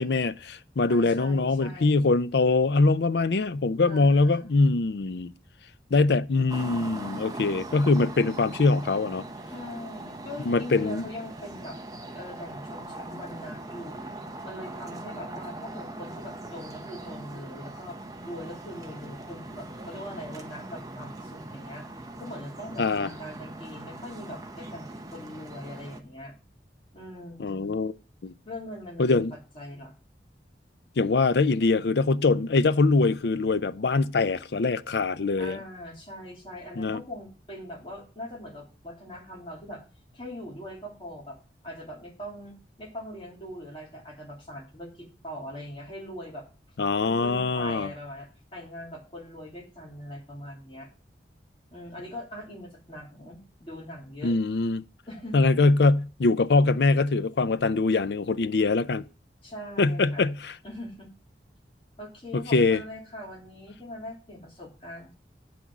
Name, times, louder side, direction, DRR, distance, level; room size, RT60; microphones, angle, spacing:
voice 1, 0.0-5.3 5.9-9.3 10.5-11.1 22.8-23.1 27.4-27.9 28.2-28.3 29.0-29.3 31.0-35.6 36.8-37.0 46.8-47.9 54.2-54.8 55.3-59.0 59.8-60.5 62.3-62.8, left 3 dB, 70° left, 0.5 m, -23 dB
voice 2, 0.9-2.0 3.9-4.5 9.5-11.8 12.1-14.1 14.4-18.0 18.2-26.3 26.9-27.8 28.4-29.9 35.4-39.9 40.1-41.4 41.6-46.5 47.0-50.9 51.7-54.3 55.1-55.4 59.4-60.3 60.6-61.1 62.0-65.1, left 1 dB, 30° left, 2.9 m, -41 dB
sound 1, 6.5-26.0, right 2 dB, 20° right, 0.8 m, -41 dB
8.4 x 6.1 x 6.0 m
head